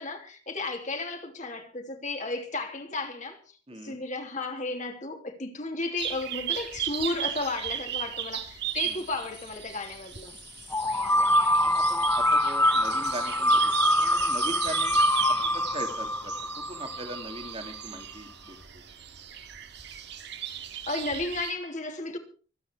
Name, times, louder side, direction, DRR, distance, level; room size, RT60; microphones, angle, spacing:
voice 1, 0.0-3.4 3.8-10.4 20.9-22.2, left 2 dB, 40° left, 3.1 m, -33 dB
voice 2, 3.7-4.0 8.8-9.0 11.1-11.3 11.6-13.7 14.0-16.3 16.7-18.6, right 1 dB, 30° right, 2.3 m, -40 dB
sound 1, 6.0-21.5, right 10 dB, 60° right, 2.1 m, -36 dB
sound 2, 10.7-17.5, left 1 dB, 10° left, 1.0 m, -24 dB
25.0 x 9.6 x 4.7 m
head